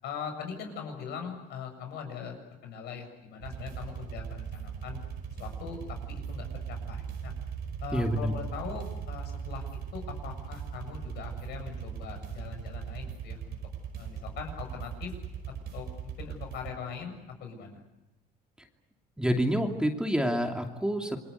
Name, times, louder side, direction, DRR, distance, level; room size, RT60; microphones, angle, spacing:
voice 1, 0.0-2.4 2.6-5.0 5.4-7.3 7.8-9.7 9.9-13.6 14.0-15.1 15.7-17.1 17.4-17.8, left 6 dB, 80° left, 4 dB, 7.2 m, -41 dB
sound 1, 3.4-16.7, right 7 dB, 75° right, 5.1 m, -39 dB
voice 2, 7.9-8.3 19.2-21.3, equal, 5° right, 3 dB, 2.8 m, -28 dB
28.0 x 23.0 x 8.2 m, 0.97 s
cardioid pair, 110°, 17 cm